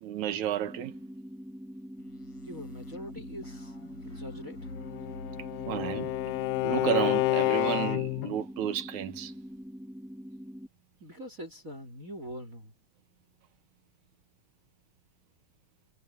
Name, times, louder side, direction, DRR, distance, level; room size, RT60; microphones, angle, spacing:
voice 1, 0.0-0.9 5.7-6.1 6.6-9.3, right 11 dB, 65° right, 2.6 m, -31 dB
sound 1, 0.7-10.7, equal, ahead, 1.7 m, -44 dB
sound 2, 2.0-8.2, left 3 dB, 45° left, 6.5 m, -48 dB
voice 2, 2.4-3.7 4.0-4.7 11.0-12.7, equal, 25° right, 3.5 m, -43 dB
Bowed string instrument, 4.8-8.4, left 19 dB, 80° left, 2.0 m, -29 dB
omnidirectional pair, 3.7 m